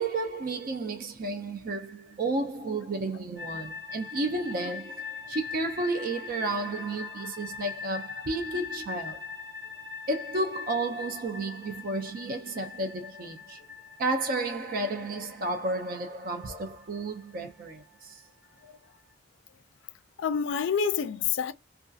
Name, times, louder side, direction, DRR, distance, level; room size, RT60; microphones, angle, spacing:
voice 1, 0.0-9.4 10.1-13.6 14.0-18.2, right 2 dB, 50° right, 0.4 m, -32 dB
sound 1, 3.4-19.1, left 6 dB, 80° right, 1.2 m, -43 dB
voice 2, 20.2-21.5, left 7 dB, 70° left, 0.3 m, -28 dB
2.6 x 2.3 x 2.3 m
head